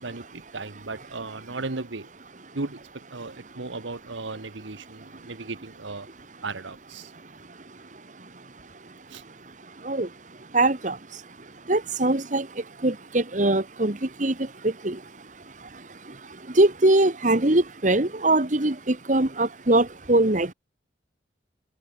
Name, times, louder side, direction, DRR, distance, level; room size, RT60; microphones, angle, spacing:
voice 1, 0.0-2.1 2.5-6.1 6.4-7.1 9.1-9.2, right 3 dB, 85° right, 1.4 m, -36 dB
voice 2, 10.5-11.0 11.7-12.5 12.8-14.3 14.8-15.0 16.6-20.5, right 2 dB, 40° right, 1.5 m, -22 dB
head